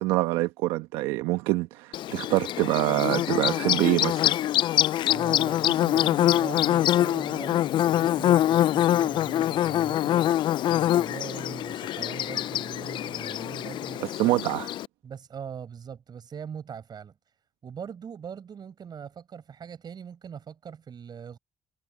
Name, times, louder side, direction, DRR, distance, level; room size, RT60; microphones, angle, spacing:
voice 1, 0.0-4.3 14.2-14.7, right 19 dB, 80° right, 1.3 m, -25 dB
Bird / Buzz, 1.9-14.9, left 12 dB, 65° left, 0.5 m, -24 dB
voice 2, 5.1-10.3 10.7-14.0 15.0-17.1 17.6-21.4, right 7 dB, 55° right, 5.8 m, -41 dB
hypercardioid pair, 50°, 9 cm